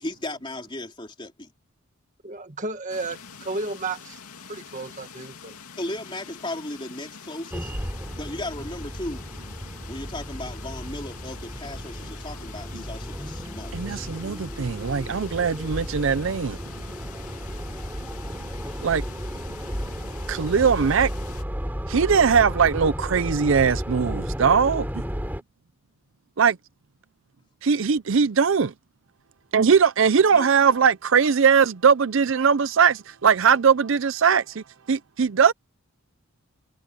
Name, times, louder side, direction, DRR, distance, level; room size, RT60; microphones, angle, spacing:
voice 1, 0.0-1.5 5.8-7.7 8.1-9.3 9.9-14.0 30.3-30.5, left 1 dB, 20° left, 3.2 m, -36 dB
voice 2, 2.2-4.2 4.5-5.6, right 3 dB, 35° right, 1.9 m, -33 dB
sound 1, 2.9-21.4, left 5 dB, 85° left, 2.6 m, -45 dB
sound 2, 7.5-25.4, equal, 10° right, 3.4 m, -33 dB
voice 3, 13.7-16.6 18.8-19.0 20.3-21.1 21.9-24.9 26.4-26.5 27.6-28.7 29.5-35.5, right 6 dB, 60° right, 0.5 m, -20 dB
head